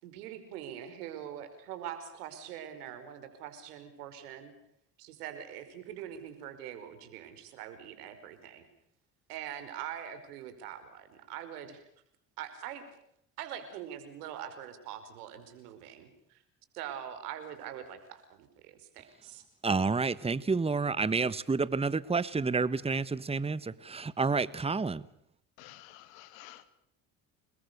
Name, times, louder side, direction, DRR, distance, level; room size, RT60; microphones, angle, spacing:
voice 1, 0.0-4.5 5.0-8.7 9.3-11.8 12.4-12.8 13.4-16.4 16.7-19.4, right 10 dB, 85° right, 5.1 m, -43 dB
voice 2, 19.6-25.0, right 4 dB, 15° right, 1.2 m, -29 dB
voice 3, 25.6-26.6, left 15 dB, 75° left, 2.9 m, -51 dB
28.5 x 21.5 x 6.9 m
hypercardioid pair, 75°, 45 cm